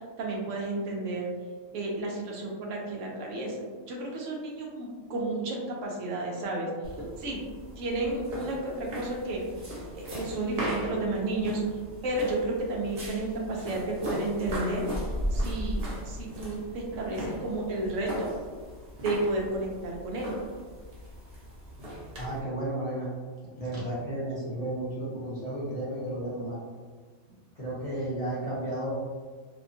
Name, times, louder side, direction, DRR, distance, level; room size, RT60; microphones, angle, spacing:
voice 1, 0.2-1.2 1.7-3.6 3.9-6.7 7.2-7.4 7.8-9.4 9.9-11.6 12.0-14.9 15.3-18.3 19.0-20.3, right 2 dB, 85° right, -1 dB, 1.0 m, -32 dB
sound 1, 6.8-22.4, equal, 60° right, 1.0 m, -37 dB
voice 2, 22.2-23.1 23.6-26.6 27.6-28.9, right 1 dB, 40° left, -9 dB, 0.6 m, -33 dB
2.7 x 2.2 x 2.6 m, 1.5 s
omnidirectional pair, 1.3 m